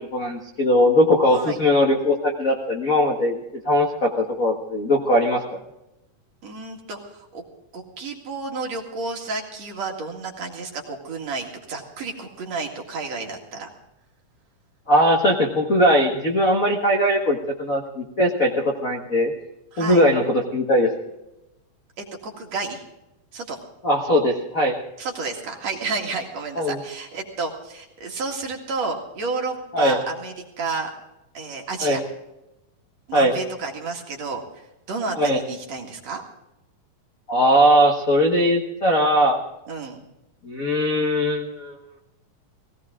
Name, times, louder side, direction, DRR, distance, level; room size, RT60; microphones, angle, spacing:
voice 1, 0.0-3.4 3.6-5.4 14.9-19.3 19.8-20.9 23.8-24.8 26.6-26.8 29.7-30.0 31.8-32.0 33.1-33.4 35.2-35.4 37.3-39.4 40.4-41.8, equal, 45° left, 1 dB, 1.1 m, -20 dB
voice 2, 1.3-1.6 6.4-7.4 7.7-13.7 19.7-20.0 22.0-22.8 23.3-23.6 25.0-30.9 31.3-32.0 33.1-36.2 39.7-40.0, right 4 dB, 55° right, 1 dB, 3.1 m, -31 dB
17.5 x 17.5 x 3.7 m, 0.92 s
omnidirectional pair, 3.8 m